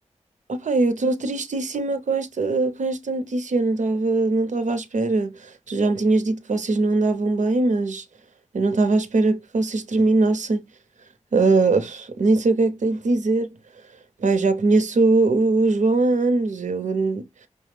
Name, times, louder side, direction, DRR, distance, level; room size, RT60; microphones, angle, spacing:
voice 1, 0.5-8.0 8.5-10.6 11.3-13.5 14.2-17.2, right 3 dB, 85° right, 0.8 m, -21 dB
5.8 x 2.3 x 3.2 m
wide cardioid pair, 75°, 12 cm